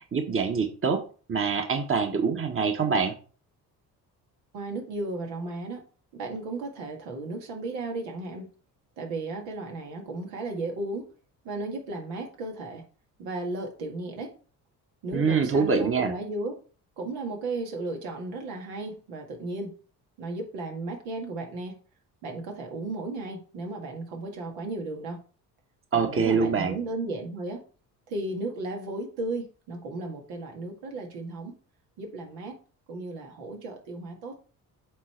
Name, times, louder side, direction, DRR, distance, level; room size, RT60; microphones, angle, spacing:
voice 1, 0.1-1.0 1.3-3.1 15.1-16.1 25.9-26.8, right 5 dB, 25° right, 5 dB, 1.5 m, -25 dB
voice 2, 4.5-5.8 6.1-8.5 9.0-11.1 11.4-12.8 13.2-14.3 15.0-16.6 17.0-19.7 20.2-21.7 22.2-25.2 25.9-27.6 28.1-31.5 32.0-32.6 32.9-34.4, right 2 dB, 70° right, 2 dB, 2.2 m, -35 dB
8.4 x 4.0 x 4.5 m, 0.38 s
hypercardioid pair, 55°, 47 cm